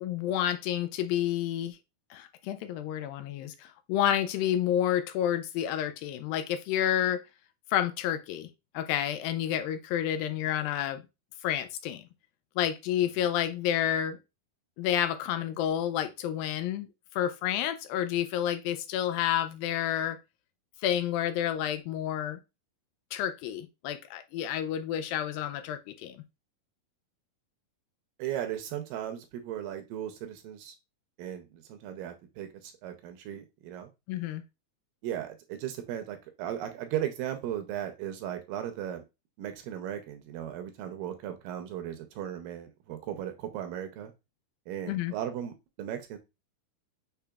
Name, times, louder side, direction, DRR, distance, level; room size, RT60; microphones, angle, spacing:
voice 1, 0.0-1.8 2.1-7.2 7.7-11.0 11.4-12.0 12.6-14.2 14.8-16.9 17.1-20.2 20.8-22.4 23.1-26.2 34.1-34.4 44.9-45.1, left 11 dB, 80° left, 2.3 m, -30 dB
voice 2, 28.2-30.8 31.2-33.9 35.0-39.0 39.4-44.1 44.7-46.2, right 11 dB, 80° right, 2.2 m, -37 dB
6.7 x 3.4 x 2.3 m
omnidirectional pair, 4.2 m